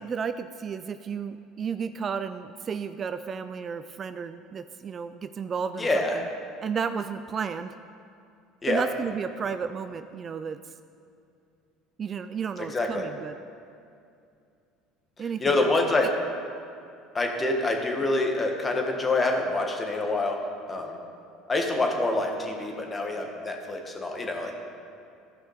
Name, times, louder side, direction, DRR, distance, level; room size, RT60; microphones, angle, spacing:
voice 1, 0.0-6.3 6.6-7.8 8.7-10.7 12.0-13.4 15.2-15.7, right 6 dB, 40° right, 11 dB, 0.4 m, -33 dB
voice 2, 5.8-6.2 8.6-8.9 12.6-13.1 15.4-16.1 17.1-20.4 20.7-21.0 21.5-24.6, left 2 dB, 25° left, 2 dB, 1.7 m, -26 dB
15.0 x 5.5 x 5.1 m, 2.5 s
supercardioid pair, 85°, 0 cm